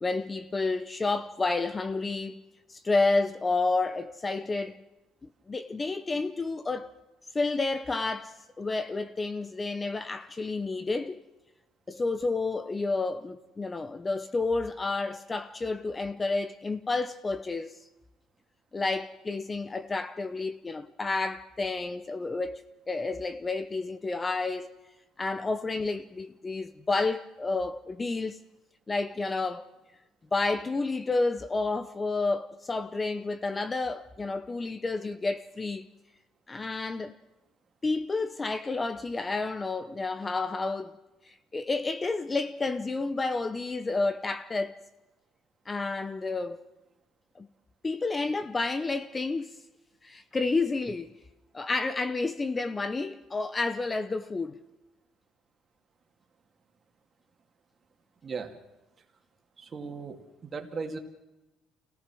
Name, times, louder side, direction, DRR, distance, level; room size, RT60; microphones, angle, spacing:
voice 1, 0.0-2.4 2.7-4.8 5.5-6.9 7.3-11.2 11.9-17.8 18.7-24.7 25.2-28.4 28.9-29.7 30.3-35.9 36.5-37.2 37.8-40.9 41.3-44.8 45.7-46.6 47.4-47.5 47.8-49.6 50.0-51.1 51.5-54.6, left 3 dB, 20° left, 0.8 m, -30 dB
voice 2, 58.2-58.6 59.6-61.0, right 4 dB, 35° right, 2.5 m, -37 dB
26.0 x 17.5 x 6.2 m
cardioid pair, 110°, 0 cm